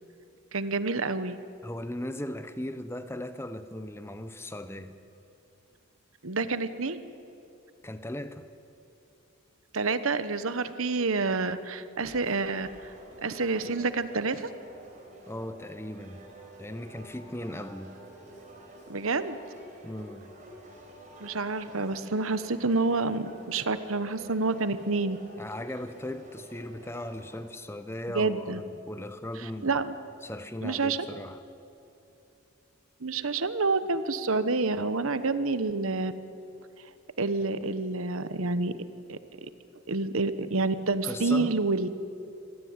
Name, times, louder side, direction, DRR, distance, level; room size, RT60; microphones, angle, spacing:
voice 1, 0.5-1.4 6.2-7.0 9.7-12.7 13.2-14.5 18.9-19.4 21.2-25.2 28.1-28.6 29.4-29.9 30.6-31.0 33.0-36.1 37.2-38.7 39.1-39.2 39.9-41.9, right 3 dB, 70° right, 1.2 m, -28 dB
voice 2, 1.6-4.9 7.8-8.5 15.3-16.3 16.6-18.0 19.8-20.3 25.4-29.7 30.2-31.4 41.0-41.6, left 1 dB, 10° left, 0.8 m, -38 dB
sound 1, 12.0-27.4, right 1 dB, 35° right, 4.8 m, -50 dB
25.5 x 18.0 x 9.7 m
head